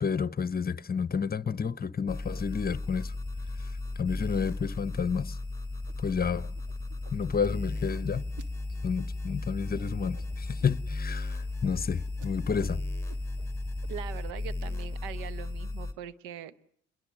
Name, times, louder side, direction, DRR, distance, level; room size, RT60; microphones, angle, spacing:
voice 1, 0.0-3.1 4.0-5.4 6.0-6.5 7.1-8.3 8.8-12.8, left 6 dB, 25° left, 1.0 m, -30 dB
sound 1, 2.1-15.9, left 2 dB, 5° left, 3.5 m, -35 dB
sound 2, 5.9-6.3 6.5-8.5 9.0-9.4 10.0-10.7 11.1-11.2 11.6-11.7 12.0-12.7 12.9-13.5 13.8-14.2, right 5 dB, 55° right, 1.9 m, -51 dB
voice 2, 13.9-16.6, right 10 dB, 75° right, 1.2 m, -41 dB
28.5 x 22.0 x 7.5 m
hypercardioid pair, 60°, 36 cm